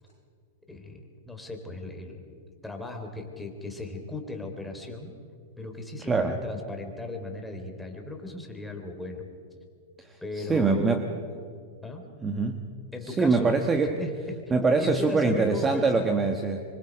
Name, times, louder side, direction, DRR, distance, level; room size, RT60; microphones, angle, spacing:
voice 1, 0.7-1.0 1.3-2.3 2.6-5.1 5.6-9.3 10.2-11.1 11.8-12.0 12.9-13.6 14.0-14.1 14.8-16.1, left 2 dB, 5° left, 3 dB, 3.5 m, -37 dB
voice 2, 6.1-6.4 10.0-11.0 12.2-12.6 13.1-14.0 14.5-16.6, right 4 dB, 15° right, 6 dB, 1.3 m, -24 dB
25.5 x 24.5 x 5.2 m, 2.4 s
hypercardioid pair, 120°, 0 cm